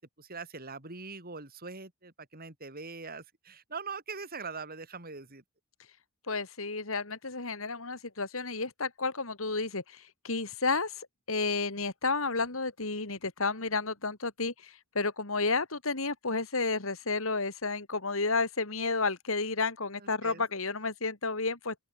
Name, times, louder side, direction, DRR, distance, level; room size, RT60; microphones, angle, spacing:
voice 1, 0.2-5.4 20.0-20.5, right 4 dB, 45° right, 5.2 m, -42 dB
voice 2, 6.3-21.7, left 3 dB, 70° left, 3.2 m, -31 dB
open air
head